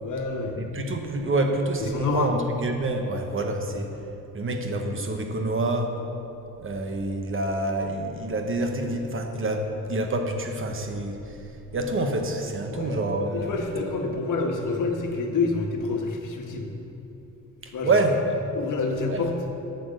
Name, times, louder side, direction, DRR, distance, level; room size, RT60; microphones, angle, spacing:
voice 1, 0.0-0.6 1.9-2.3 12.7-13.0 13.3-16.7 17.7-18.0 18.5-19.3, left 3 dB, 65° left, 2 dB, 1.4 m, -28 dB
voice 2, 0.6-4.0 4.3-5.9 6.6-11.4 11.7-13.5 17.6-18.2 19.1-19.2, right 2 dB, 40° right, 4 dB, 1.2 m, -27 dB
8.7 x 7.0 x 6.5 m, 2.9 s
cardioid pair, 90°, 34 cm